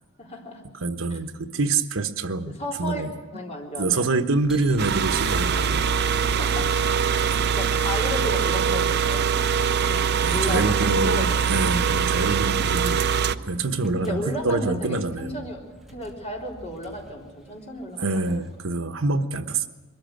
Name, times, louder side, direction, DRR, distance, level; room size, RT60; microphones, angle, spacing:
voice 1, 0.2-0.6 1.1-1.2 2.5-3.0 3.3-4.0 6.4-6.8 7.5-11.6 14.0-15.6 15.9-18.4, equal, 35° left, -1 dB, 3.8 m, -34 dB
voice 2, 0.8-3.1 3.8-5.8 10.2-15.4 18.0-19.7, right 3 dB, 75° right, 7 dB, 1.1 m, -26 dB
sound 1, 4.2-18.7, right 1 dB, ahead, 2.7 m, -43 dB
sound 2, 4.8-13.4, right 7 dB, 55° right, 0.6 m, -23 dB
22.0 x 13.5 x 9.1 m, 1.3 s
head